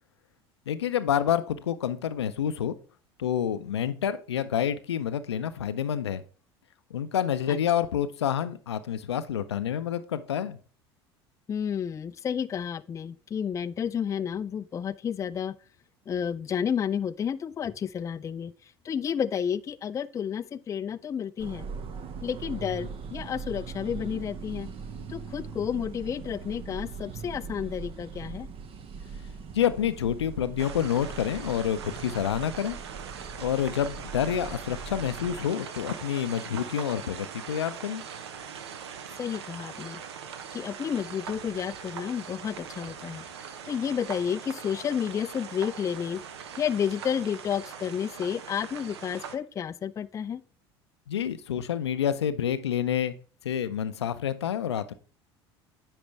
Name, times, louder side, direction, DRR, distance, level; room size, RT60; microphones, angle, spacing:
voice 1, 0.7-2.7 3.2-6.2 6.9-10.6 29.5-32.8 33.4-38.0 51.1-53.1 53.4-54.9, left 9 dB, 85° left, 0.5 m, -28 dB
voice 2, 11.5-15.6 16.1-18.5 18.8-21.7 22.2-24.7 25.1-28.5 39.2-40.0 40.5-43.3 43.6-46.2 46.6-50.4, left 8 dB, 25° left, 0.3 m, -31 dB
sound 1, 21.4-35.5, right 5 dB, 45° right, 0.8 m, -40 dB
sound 2, 30.6-49.4, right 7 dB, 75° right, 0.7 m, -41 dB
8.8 x 5.0 x 3.4 m
hypercardioid pair, 70°, 14 cm